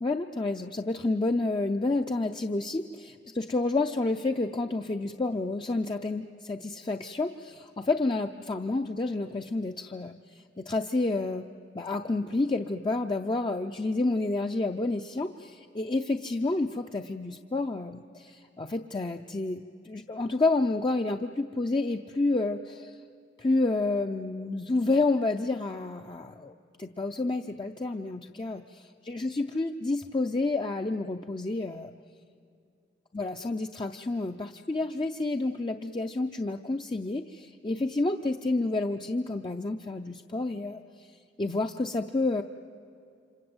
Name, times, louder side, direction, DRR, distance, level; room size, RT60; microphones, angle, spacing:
voice 1, 0.0-10.2 10.6-11.5 11.7-23.0 23.4-31.9 33.1-41.1 41.4-42.4, left 2 dB, 25° left, 5 dB, 0.6 m, -29 dB
28.5 x 26.0 x 8.0 m, 2.5 s
head